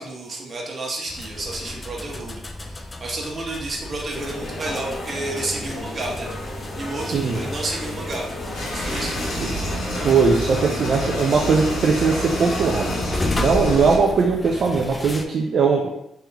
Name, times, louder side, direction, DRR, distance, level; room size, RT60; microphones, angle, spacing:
voice 1, 0.0-6.3 6.8-8.3 8.7-9.2, right 2 dB, 35° right, -1 dB, 1.1 m, -31 dB
sound 1, 1.1-15.2, left 2 dB, 25° left, 0.4 m, -34 dB
sound 2, 4.1-13.0, left 1 dB, 50° left, 0.9 m, -33 dB
voice 2, 7.0-7.4 9.4-9.5 10.0-13.0 13.4-15.9, right 5 dB, 55° right, 0 dB, 0.4 m, -20 dB
sound 3, 8.5-14.0, equal, 85° left, 1.1 m, -28 dB
3.5 x 3.3 x 3.0 m, 0.82 s
cardioid pair, 90°, 0 cm